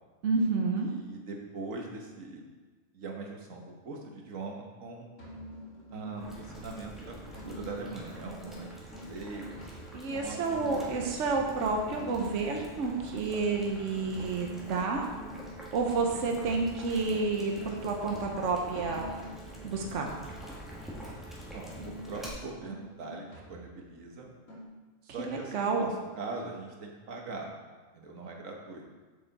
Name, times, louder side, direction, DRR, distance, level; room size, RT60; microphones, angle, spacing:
voice 1, 0.2-0.9 9.9-15.1 15.7-19.1 19.6-20.1 25.3-25.9, right 4 dB, 70° right, 2 dB, 1.2 m, -30 dB
voice 2, 0.8-2.4 2.9-5.1 5.9-9.6 9.9-11.0 16.1-16.3 21.5-24.3 25.0-27.5 27.9-28.9, right 3 dB, 90° right, 1 dB, 1.6 m, -42 dB
sound 1, 5.2-6.6 7.3-11.1 11.9-15.6 16.5-20.3 21.0-24.0 24.5-24.6, equal, 75° left, 3.4 m, -46 dB
Boiling, 6.2-22.3, right 1 dB, ahead, 1.7 m, -46 dB
7.4 x 7.0 x 4.1 m, 1.3 s
omnidirectional pair, 1.3 m